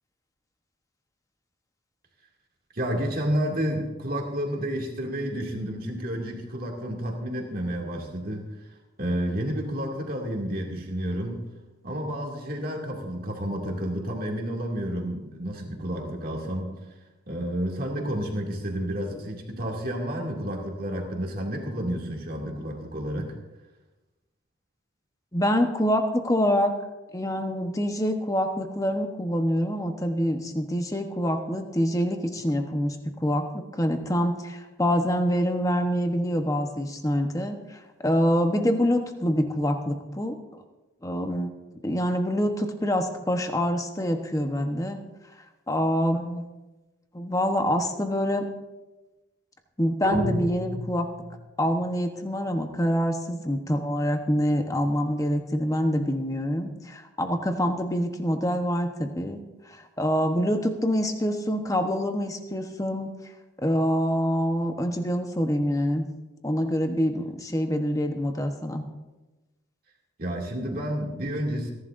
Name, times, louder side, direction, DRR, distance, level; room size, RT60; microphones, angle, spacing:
voice 1, 2.7-8.5 9.0-11.4 11.8-16.8 17.3-23.3 70.2-71.7, equal, 45° right, 0 dB, 2.4 m, -30 dB
voice 2, 25.3-26.7 27.1-33.0 33.2-40.4 41.0-41.5 41.8-45.0 45.7-46.4 47.1-48.5 49.8-51.1 51.6-59.4 59.7-63.1 63.6-66.1 66.4-68.8, equal, 15° left, 5 dB, 1.0 m, -26 dB
sound 1, 50.0-51.5, equal, 65° right, 1.9 m, -31 dB
28.5 x 11.0 x 2.6 m, 1.1 s
head